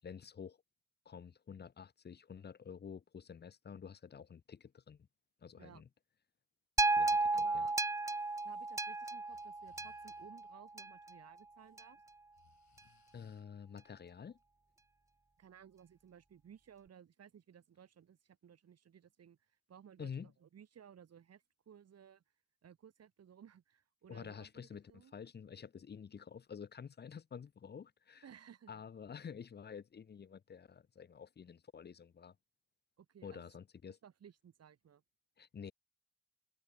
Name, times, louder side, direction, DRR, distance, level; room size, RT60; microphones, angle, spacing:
voice 1, 0.0-0.6 1.0-5.1 5.4-5.9 6.9-7.7 13.1-14.4 20.0-20.3 24.1-28.2 28.7-32.4 33.2-34.0 35.4-35.7, left 7 dB, 35° left, 0.9 m, -49 dB
sound 1, 6.8-11.1 11.8-11.9, right 3 dB, 10° right, 0.5 m, -34 dB
voice 2, 7.3-7.7 8.4-12.0 15.4-22.2 22.6-25.1 28.2-28.8 33.0-33.5 34.0-35.0, right 8 dB, 55° right, 5.4 m, -59 dB
Breathing, 8.0-10.6 11.4-11.8 12.1-13.5, left 10 dB, 65° left, 7.3 m, -71 dB
cardioid pair, 90°, 30 cm